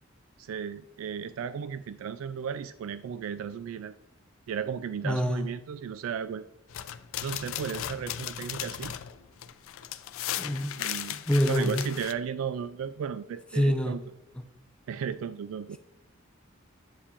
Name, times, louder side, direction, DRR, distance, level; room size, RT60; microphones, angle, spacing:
voice 1, 0.4-3.9 4.5-6.4 7.2-8.9 10.8-11.2 11.5-14.0 14.9-15.8, right 7 dB, 80° right, 13 dB, 0.3 m, -35 dB
voice 2, 5.0-5.5 10.4-10.7 11.1-11.9 13.5-14.0, equal, 5° left, 5 dB, 0.6 m, -26 dB
sound 1, 6.7-12.1, left 11 dB, 80° left, 0.4 m, -36 dB
8.4 x 7.2 x 2.5 m, 0.84 s
head